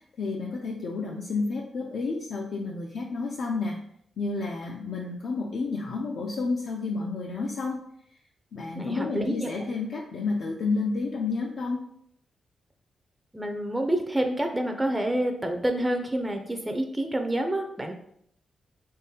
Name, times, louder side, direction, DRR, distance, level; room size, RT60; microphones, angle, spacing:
voice 1, 0.2-3.8 4.2-7.8 8.5-11.8, left 3 dB, 70° left, -2 dB, 0.5 m, -30 dB
voice 2, 8.7-9.5 13.3-17.9, right 1 dB, 10° right, 4 dB, 0.4 m, -28 dB
3.7 x 3.7 x 2.8 m, 0.69 s
cardioid pair, 115°, 0 cm